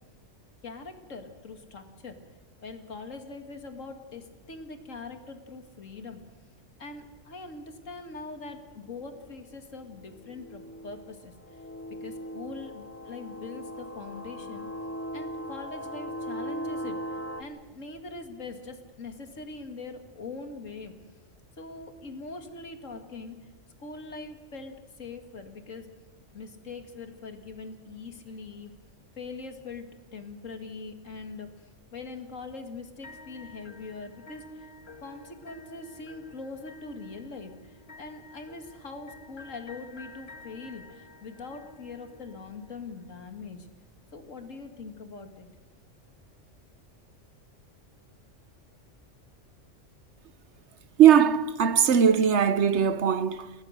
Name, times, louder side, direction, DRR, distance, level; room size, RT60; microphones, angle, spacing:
voice 1, 0.6-2.2 2.6-6.2 6.8-11.3 12.0-14.7 15.1-17.0 17.4-21.0 21.6-23.4 23.8-25.9 26.3-28.7 29.2-34.7 35.0-43.7 44.1-45.5, left 3 dB, 90° left, 2.4 m, -42 dB
sound 1, 9.1-9.2 10.0-17.4, equal, 15° left, 1.0 m, -38 dB
sound 2, 33.0-43.1, left 2 dB, 55° left, 2.2 m, -51 dB
voice 2, 51.0-53.5, right 8 dB, 65° right, 1.1 m, -20 dB
29.5 x 17.0 x 6.5 m
omnidirectional pair, 1.3 m